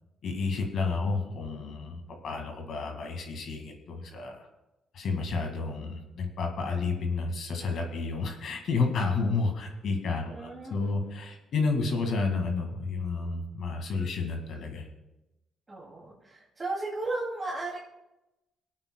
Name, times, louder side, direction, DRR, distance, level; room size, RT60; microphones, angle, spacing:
voice 1, 0.2-4.4 4.9-14.9, left 4 dB, 65° left, 3 dB, 2.0 m, -31 dB
voice 2, 10.3-11.2 15.7-17.8, right 2 dB, 25° right, -5 dB, 2.5 m, -35 dB
26.0 x 8.6 x 2.3 m, 0.97 s
cardioid pair, 90°, 0 cm